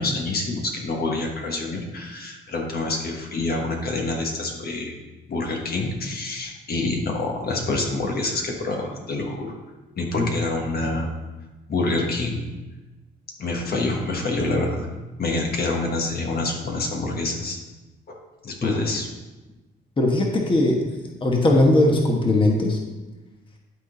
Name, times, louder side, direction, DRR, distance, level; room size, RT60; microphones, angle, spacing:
voice 1, 0.0-4.9 5.3-9.5 10.0-11.1 11.7-12.4 13.4-14.9 15.2-17.6 18.4-19.1, left 2 dB, 50° left, 1 dB, 1.3 m, -26 dB
voice 2, 20.0-20.8 21.2-22.8, left 1 dB, 25° left, 0 dB, 1.3 m, -19 dB
11.5 x 3.9 x 3.9 m, 1.1 s
cardioid pair, 90°, 20 cm